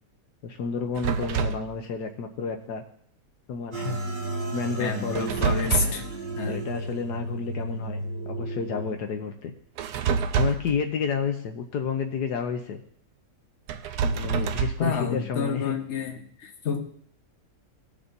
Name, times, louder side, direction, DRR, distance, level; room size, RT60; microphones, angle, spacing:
voice 1, 0.4-2.8 3.5-4.0 4.5-6.0 6.5-9.5 10.4-12.8 14.0-15.7, left 6 dB, 75° left, 5 dB, 1.4 m, -31 dB
sound 1, 1.0-1.7 5.1-6.1 9.8-10.8 13.7-14.9, right 5 dB, 75° right, 1.1 m, -26 dB
sound 2, 3.7-9.0, right 2 dB, 35° right, 1.5 m, -33 dB
voice 2, 4.8-6.0 6.3-6.6 14.8-16.8, left 6 dB, 45° left, 3 dB, 1.3 m, -29 dB
19.5 x 7.0 x 2.7 m, 0.64 s
omnidirectional pair, 1.8 m